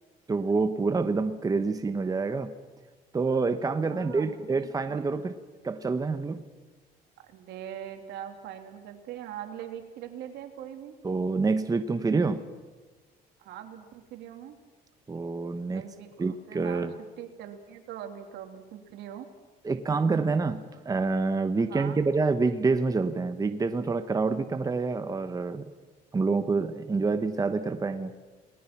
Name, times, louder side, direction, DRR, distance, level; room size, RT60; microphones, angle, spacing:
voice 1, 0.3-2.5 3.1-5.4 5.6-6.4 11.0-12.4 15.1-15.8 16.2-16.9 19.6-25.6 26.1-28.1, right 4 dB, 20° right, 9 dB, 1.2 m, -27 dB
voice 2, 3.8-5.1 7.3-10.9 13.4-14.6 15.7-16.9 17.2-19.3 21.6-22.0, right 10 dB, 85° right, 5 dB, 2.9 m, -42 dB
29.5 x 19.5 x 6.0 m, 1.3 s
cardioid pair, 110°, 17 cm